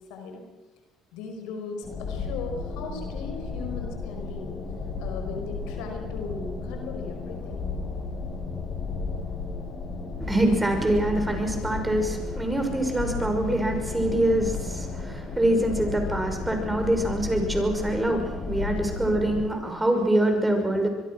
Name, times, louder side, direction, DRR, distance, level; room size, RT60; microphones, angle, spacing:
voice 1, 0.1-0.4 1.1-4.5 5.0-7.7 20.5-20.8, left 4 dB, 85° left, 4 dB, 5.1 m, -38 dB
sound 1, 1.8-19.4, left 4 dB, 50° left, 7.2 m, -33 dB
voice 2, 10.2-20.9, right 1 dB, 10° right, 5 dB, 5.9 m, -25 dB
25.0 x 22.0 x 6.2 m, 1.1 s
supercardioid pair, 85°, 0 cm